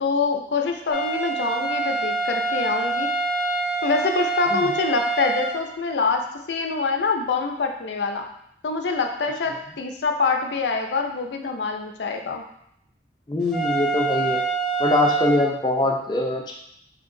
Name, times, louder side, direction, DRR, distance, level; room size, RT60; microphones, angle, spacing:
voice 1, 0.0-3.1 3.8-8.3 8.6-12.4, left 4 dB, 85° left, 4 dB, 0.5 m, -25 dB
sound 1, 0.9-5.6 13.5-15.4, right 4 dB, ahead, 0.7 m, -25 dB
voice 2, 13.3-14.4 14.8-16.5, left 2 dB, 25° left, 0 dB, 0.4 m, -23 dB
4.4 x 2.8 x 2.6 m, 0.73 s
head